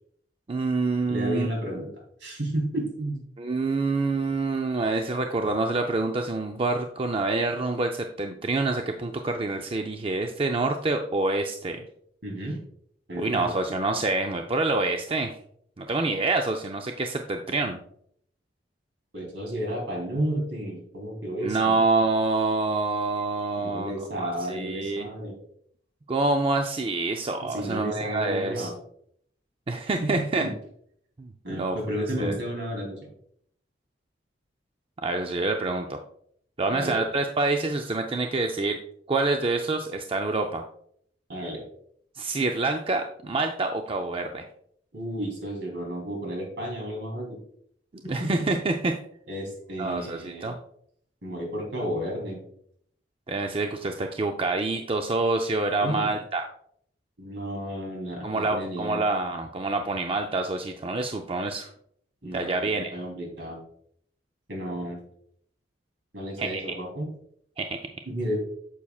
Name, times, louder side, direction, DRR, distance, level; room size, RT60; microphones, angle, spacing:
voice 1, 0.5-1.5 3.4-11.8 13.2-15.3 15.8-17.8 21.4-25.1 26.1-28.7 29.7-30.4 31.2-32.4 35.0-36.0 36.6-38.8 39.1-40.6 42.2-44.5 48.1-49.0 49.8-50.6 53.3-56.5 58.2-61.7 62.2-62.9 66.4-66.6 67.6-67.8, right 3 dB, 30° right, 4 dB, 0.5 m, -27 dB
voice 2, 1.1-1.9 2.2-3.2 12.2-12.6 13.1-13.6 19.1-21.7 23.6-25.4 27.4-28.7 30.0-30.5 31.4-33.1 36.7-37.1 41.3-41.6 44.9-47.4 48.1-48.5 49.3-50.5 51.2-52.4 55.8-56.1 57.2-59.0 62.2-62.6 62.9-63.6 64.5-65.0 66.1-67.1 68.0-68.4, right 1 dB, 70° right, 0 dB, 3.2 m, -32 dB
9.1 x 7.1 x 2.3 m, 0.66 s
head